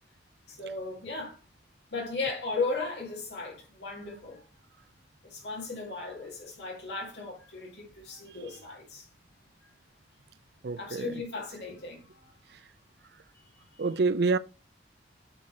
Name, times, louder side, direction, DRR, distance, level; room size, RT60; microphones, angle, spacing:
voice 1, 0.5-1.4 1.9-4.4 5.2-9.1 10.8-12.3 13.3-13.9, left 3 dB, 65° left, 2.1 m, -36 dB
voice 2, 10.6-11.1 13.8-14.4, right 4 dB, 60° right, 0.4 m, -27 dB
9.0 x 4.1 x 4.3 m
head